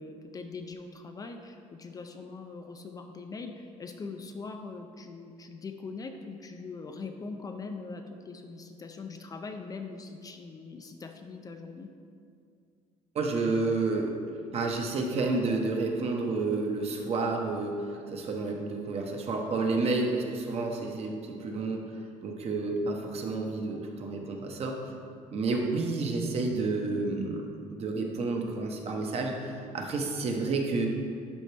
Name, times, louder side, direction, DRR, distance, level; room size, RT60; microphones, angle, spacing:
voice 1, 0.0-11.9, left 4 dB, 25° left, 5 dB, 0.4 m, -42 dB
voice 2, 13.1-14.2 14.5-17.7 18.1-21.8 22.2-24.8 25.3-30.9, right 3 dB, 50° right, 2 dB, 0.9 m, -30 dB
11.5 x 4.3 x 3.4 m, 2.3 s
cardioid pair, 140°, 14 cm